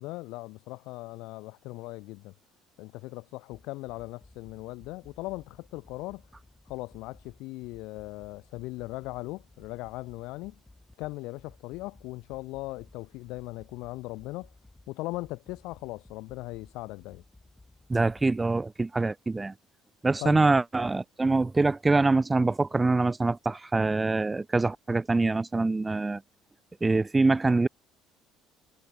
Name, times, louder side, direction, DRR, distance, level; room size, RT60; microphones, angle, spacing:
voice 1, 0.0-2.3 2.8-6.2 6.7-10.6 11.0-14.5 14.9-17.2 20.2-20.5, left 21 dB, 80° left, 0.5 m, -39 dB
sound 1, 3.5-18.4, left 2 dB, 10° left, 2.9 m, -57 dB
voice 2, 17.9-19.5 20.0-26.2 26.8-27.7, right 3 dB, 10° right, 0.3 m, -24 dB
cardioid pair, 155°, 0 cm